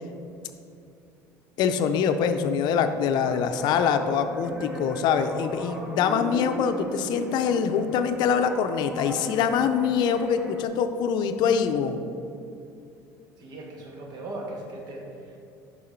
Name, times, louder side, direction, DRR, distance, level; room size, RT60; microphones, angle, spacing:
voice 1, 1.6-12.0, left 7 dB, 65° left, 8 dB, 0.5 m, -24 dB
sound 1, 3.2-10.7, right 1 dB, 15° right, 0.8 m, -36 dB
voice 2, 13.4-15.4, right 2 dB, 60° right, 0 dB, 1.4 m, -38 dB
6.5 x 5.5 x 4.4 m, 2.6 s
supercardioid pair, 90°, 8 cm